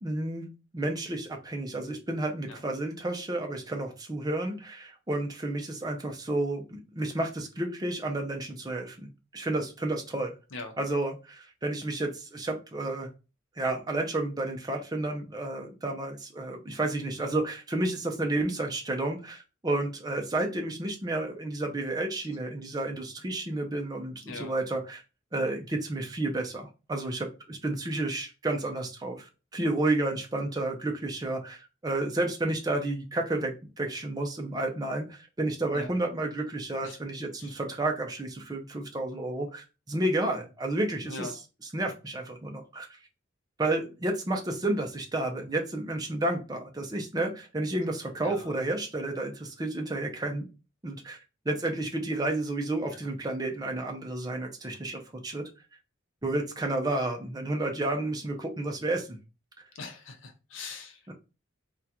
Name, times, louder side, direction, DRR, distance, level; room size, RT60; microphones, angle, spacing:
voice 1, 0.0-10.3 10.8-13.1 13.6-25.0 25.3-41.4 41.7-42.9 43.6-50.5 50.8-51.2 51.5-55.5 56.2-59.2 59.6-59.7 61.1-61.2, right 2 dB, 20° right, 2 dB, 0.5 m, -31 dB
voice 2, 41.1-41.4 48.2-48.5 59.7-61.1, left 3 dB, 65° left, 5 dB, 0.7 m, -41 dB
3.6 x 2.2 x 2.8 m, 0.31 s
head